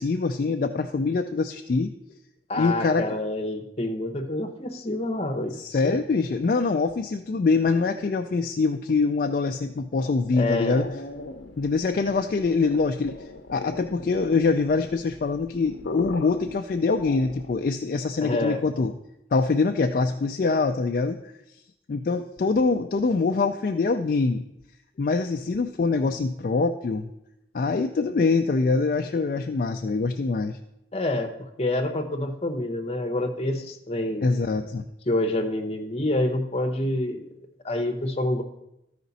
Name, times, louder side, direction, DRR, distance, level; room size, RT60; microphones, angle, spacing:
voice 1, 0.0-1.9 2.5-3.2 5.6-10.9 11.6-13.2 13.5-18.9 19.3-21.2 21.9-24.4 25.0-27.1 27.5-30.6 34.2-34.8, left 4 dB, 50° left, 6 dB, 0.3 m, -24 dB
voice 2, 2.5-6.0 10.3-10.9 18.2-18.6 30.9-34.3 35.1-37.3 37.6-38.4, left 1 dB, 35° left, 5 dB, 0.8 m, -27 dB
sound 1, 9.9-17.8, left 2 dB, 80° left, 0.7 m, -39 dB
13.5 x 5.1 x 4.0 m, 0.86 s
head